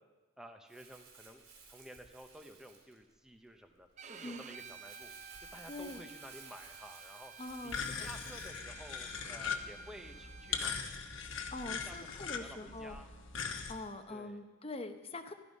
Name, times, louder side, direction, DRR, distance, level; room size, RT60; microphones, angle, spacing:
voice 1, 0.4-5.1 5.5-7.3 7.6-10.8 11.9-13.1 14.1-14.4, equal, 5° right, 4 dB, 0.9 m, -53 dB
Crumpling crinkling, 0.7-8.6, right 5 dB, 80° right, 4.4 m, -57 dB
Bowed string instrument, 4.0-10.9, right 6 dB, 35° right, 0.5 m, -53 dB
voice 2, 5.7-6.0 7.4-8.1 11.5-13.0 13.7-15.3, left 2 dB, 25° left, 8 dB, 0.8 m, -44 dB
sound 1, 7.7-13.7, left 6 dB, 65° left, 1.1 m, -40 dB
14.5 x 12.5 x 5.4 m, 1.2 s
head